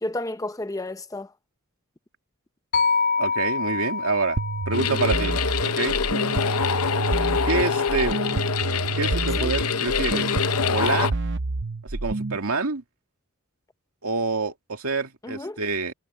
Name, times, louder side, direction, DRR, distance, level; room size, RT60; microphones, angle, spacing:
voice 1, 0.0-1.3 7.5-7.7 9.4-9.5 15.2-15.6, left 1 dB, 15° left, 0.8 m, -32 dB
sound 1, 2.7-6.9, left 4 dB, 50° left, 2.1 m, -28 dB
voice 2, 3.2-4.4 4.7-5.4 5.6-6.0 7.4-8.2 9.0-10.3 10.7-11.2 11.9-12.8 14.0-15.9, right 3 dB, 75° right, 2.3 m, -27 dB
sound 2, 4.4-12.4, right 3 dB, 55° right, 0.8 m, -28 dB
sound 3, 4.7-11.1, left 6 dB, 85° left, 0.8 m, -25 dB
head